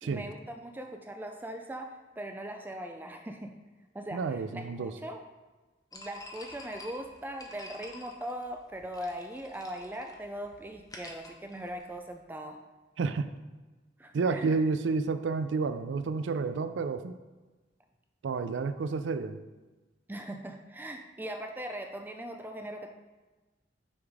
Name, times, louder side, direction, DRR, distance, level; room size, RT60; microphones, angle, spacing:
voice 1, 0.0-3.5 3.9-5.2 5.9-12.6 14.0-14.6 20.1-22.9, right 1 dB, 10° right, 4 dB, 0.3 m, -40 dB
voice 2, 4.1-4.9 13.0-13.3 14.1-17.2 18.2-19.4, right 4 dB, 80° right, 11 dB, 0.4 m, -30 dB
sound 1, 5.9-12.2, left 2 dB, 20° left, 0.8 m, -49 dB
6.1 x 3.9 x 4.6 m, 1.2 s
head